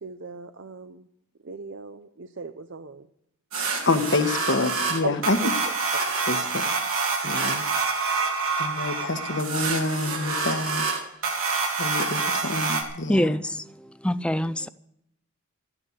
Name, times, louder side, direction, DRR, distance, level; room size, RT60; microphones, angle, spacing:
voice 1, 0.0-1.1 1.4-3.1 5.0-5.5, right 4 dB, 55° right, 0.6 m, -37 dB
sound 1, 3.5-12.8, right 4 dB, 80° right, 3.4 m, -27 dB
voice 2, 3.8-5.5 6.3-6.7 7.2-7.6 8.6-11.0 11.8-13.2, left 2 dB, 55° left, 1.3 m, -27 dB
voice 3, 13.1-14.7, left 1 dB, 5° left, 0.4 m, -25 dB
13.5 x 9.8 x 8.1 m
head